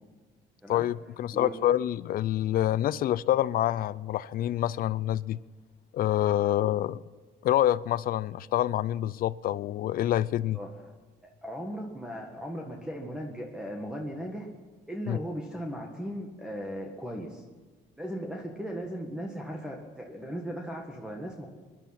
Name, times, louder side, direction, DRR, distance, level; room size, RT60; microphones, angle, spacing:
voice 1, 0.7-5.4 5.9-7.0 7.4-10.6 15.1-15.2, left 12 dB, 60° left, 0.5 m, -27 dB
voice 2, 1.3-1.8 10.5-10.7 11.2-14.5 14.9-17.4 18.0-21.5, equal, 5° right, 1.8 m, -37 dB
21.0 x 11.5 x 5.9 m
cardioid pair, 110°, 17 cm